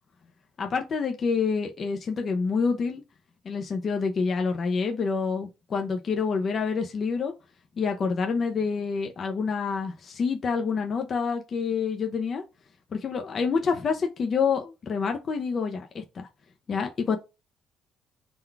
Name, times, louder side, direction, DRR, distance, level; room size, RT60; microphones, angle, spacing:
voice 1, 0.6-3.0 3.4-7.3 7.8-12.4 12.9-16.3 16.7-17.2, left 5 dB, 30° left, 0.4 m, -27 dB
3.8 x 2.2 x 4.4 m
cardioid pair, 170°, 0 cm